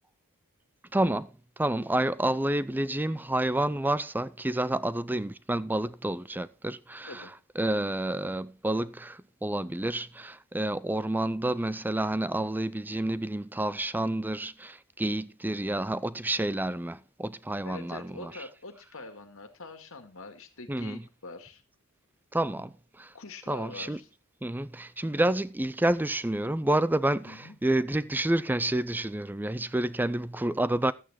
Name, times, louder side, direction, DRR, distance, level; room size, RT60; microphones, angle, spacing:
voice 1, 0.9-1.3 1.6-7.2 7.6-18.3 20.7-21.0 22.3-23.1 23.5-24.0 24.4-30.9, right 1 dB, 10° right, 0.5 m, -29 dB
voice 2, 17.6-21.6 22.6-22.7 23.1-24.1 27.2-27.6, left 3 dB, 65° left, 2.0 m, -44 dB
13.0 x 8.7 x 4.3 m
head